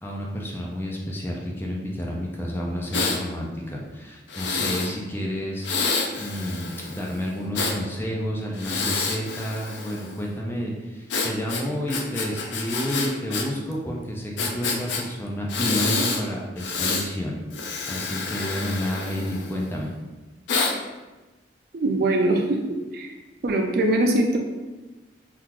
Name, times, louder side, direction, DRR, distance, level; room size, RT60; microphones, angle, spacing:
voice 1, 0.0-5.7 6.2-17.4 17.9-19.9, equal, 10° left, -2 dB, 0.4 m, -30 dB
Breathing, 2.9-3.2 4.3-4.9 5.6-7.8 8.5-10.2 11.1-13.5 13.7-13.8 14.4-15.0 15.5-16.2 16.6-17.1 17.5-19.7 20.5-20.7, left 4 dB, 75° left, 0.4 m, -28 dB
voice 2, 21.7-22.6 22.9-23.1 23.4-24.4, right 1 dB, 55° right, 2 dB, 0.4 m, -22 dB
2.9 x 2.4 x 3.6 m, 1.2 s
head